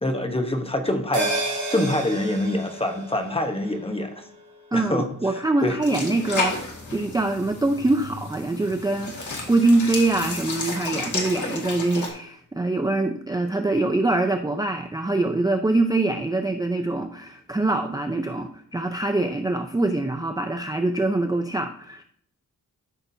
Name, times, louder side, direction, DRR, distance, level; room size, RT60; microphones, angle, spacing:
voice 1, 0.0-4.2 4.7-5.8, left 1 dB, 15° left, 5 dB, 1.0 m, -26 dB
sound 1, 1.1-5.9 6.2-6.3, right 1 dB, 65° right, 2.5 m, -32 dB
voice 2, 4.7-22.0, right 2 dB, 10° right, 6 dB, 0.5 m, -24 dB
sound 2, 5.8-12.1, left 3 dB, 65° left, 2.0 m, -32 dB
13.0 x 5.8 x 2.7 m, 0.64 s
wide cardioid pair, 130°, 32 cm